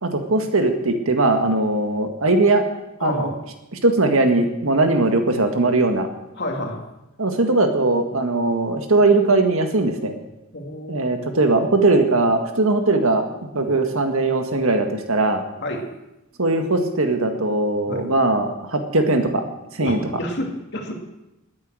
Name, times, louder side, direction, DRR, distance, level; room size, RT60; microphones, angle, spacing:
voice 1, 0.0-2.7 3.0-3.3 3.8-6.1 7.2-10.1 10.9-13.3 13.6-15.4 16.4-19.4 19.7-20.0, right 2 dB, 70° right, 5 dB, 1.9 m, -19 dB
voice 2, 3.0-3.4 6.4-6.8 10.5-11.1 13.5-13.7 15.6-15.9 17.9-18.0 19.8-20.9, left 1 dB, 50° left, 2 dB, 2.5 m, -29 dB
19.5 x 9.5 x 6.3 m, 0.92 s
head